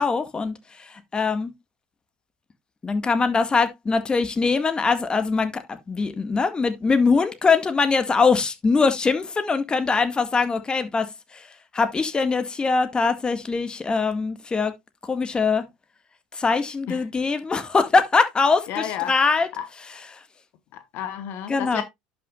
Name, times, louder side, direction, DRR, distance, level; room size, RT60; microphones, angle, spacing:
voice 1, 0.0-1.5 2.8-11.5 11.7-14.7 15.0-15.6 16.3-19.5 20.1-20.2 21.5-21.8, left 4 dB, 20° left, 1.8 m, -22 dB
voice 2, 18.7-19.7 20.7-21.8, left 11 dB, 60° left, 1.1 m, -32 dB
11.5 x 6.2 x 2.4 m
hypercardioid pair, 85°, 4 cm